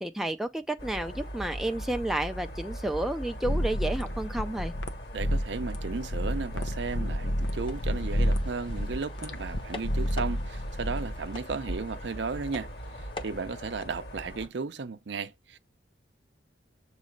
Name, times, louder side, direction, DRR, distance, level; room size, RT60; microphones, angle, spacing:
voice 1, 0.0-4.7, right 1 dB, ahead, 0.4 m, -31 dB
sound 1, 0.8-14.5, equal, 60° left, 1.9 m, -41 dB
sound 2, 3.4-11.2, equal, 90° left, 0.8 m, -30 dB
voice 2, 5.1-12.7 13.2-15.6, right 4 dB, 75° right, 0.5 m, -35 dB
sound 3, 7.4-13.9, left 2 dB, 30° left, 0.8 m, -46 dB
7.4 x 3.2 x 5.1 m
head